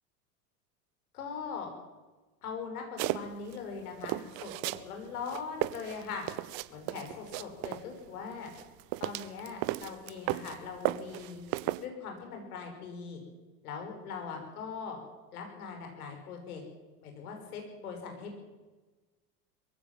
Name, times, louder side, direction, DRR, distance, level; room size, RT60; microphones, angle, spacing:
voice 1, 1.1-1.7 2.4-6.2 6.7-8.5 9.0-11.5 11.8-13.2 13.6-15.0 15.3-16.6 17.0-18.4, left 5 dB, 75° left, 3 dB, 6.3 m, -41 dB
sound 1, 3.0-3.6 4.0-4.9 5.2-7.8 8.5-10.6 10.8-11.8, right 17 dB, 50° right, 1.1 m, -34 dB
22.0 x 15.5 x 7.6 m, 1.2 s
hypercardioid pair, 85°, 45 cm